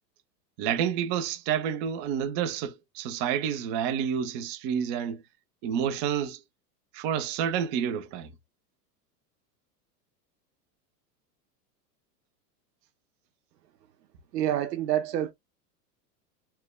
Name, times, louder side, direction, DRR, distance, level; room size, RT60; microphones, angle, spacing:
voice 1, 0.6-5.2 5.6-6.4 6.9-8.3, right 8 dB, 40° right, 0.5 m, -29 dB
voice 2, 14.3-15.3, right 11 dB, 80° right, 0.7 m, -27 dB
3.2 x 2.1 x 2.2 m
hypercardioid pair, 95°, 49 cm